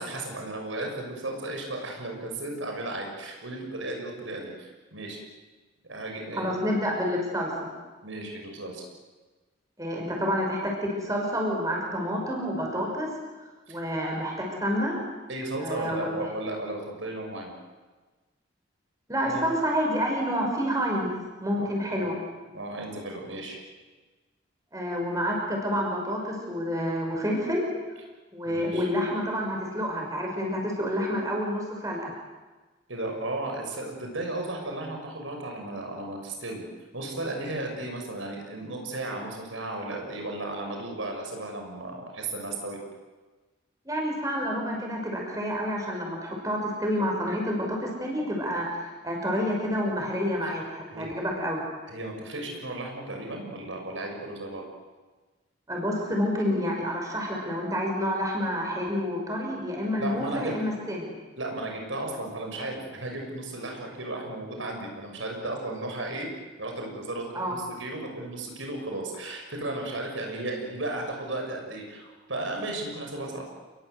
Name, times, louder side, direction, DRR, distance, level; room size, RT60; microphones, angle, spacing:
voice 1, 0.0-5.2 5.9-6.6 8.0-8.8 10.1-10.3 13.7-13.8 15.3-17.5 19.2-19.5 21.5-22.2 22.5-23.6 28.5-28.9 32.9-36.6 36.9-42.8 50.4-50.5 50.9-51.1 51.9-54.6 60.0-60.6 61.4-66.3 66.6-73.4, right 2 dB, 80° right, 2 dB, 6.5 m, -35 dB
voice 2, 6.3-7.5 9.8-13.1 13.7-15.0 15.6-16.2 19.1-21.1 21.4-22.1 24.7-27.7 28.3-32.1 43.8-51.6 55.7-61.1 67.3-67.6, equal, 15° right, 0 dB, 5.8 m, -28 dB
29.0 x 21.5 x 8.1 m, 1.3 s
head